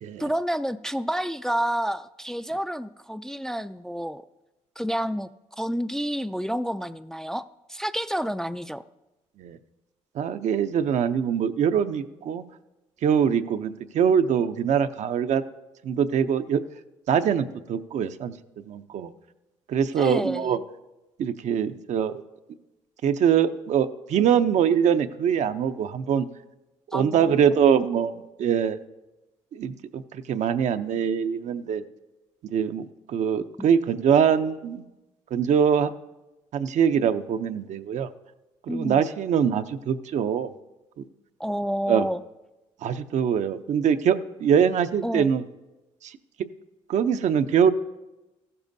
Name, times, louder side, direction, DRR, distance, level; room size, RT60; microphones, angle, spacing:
voice 1, 0.2-4.3 4.8-5.3 5.6-8.8 20.0-20.6 26.9-27.4 33.6-33.7 38.7-39.0 41.4-42.2 45.0-45.3, equal, 5° left, 11 dB, 0.3 m, -29 dB
voice 2, 10.2-12.4 13.0-15.4 15.8-16.6 17.1-18.3 18.7-19.1 19.7-20.6 21.2-22.2 23.0-26.3 26.9-28.8 29.5-31.8 32.5-34.8 35.3-35.9 36.5-38.1 38.7-40.5 41.9-42.1 42.8-45.4 46.0-46.1 46.9-47.7, right 8 dB, 65° right, 10 dB, 0.6 m, -23 dB
14.5 x 12.0 x 2.7 m, 1.0 s
supercardioid pair, 65°, 13 cm